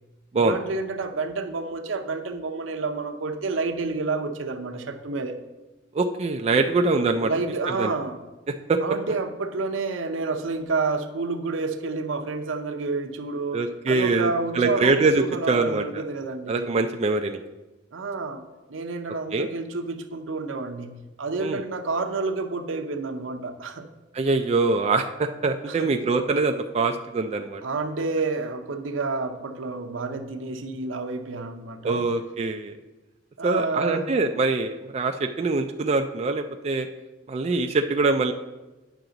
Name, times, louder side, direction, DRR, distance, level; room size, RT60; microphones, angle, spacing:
voice 1, 0.4-5.4 7.2-8.2 8.8-16.7 17.9-18.4 18.7-23.9 25.7-25.9 27.6-32.0 33.4-34.1, right 3 dB, 85° right, 6 dB, 0.7 m, -29 dB
voice 2, 5.9-7.3 7.7-7.9 8.7-8.8 13.5-16.0 16.5-17.4 19.3-19.5 21.4-21.6 24.1-27.6 31.8-32.7 33.4-36.9 37.3-38.3, right 3 dB, 35° right, 5 dB, 0.3 m, -24 dB
9.2 x 5.8 x 3.9 m, 1.1 s
head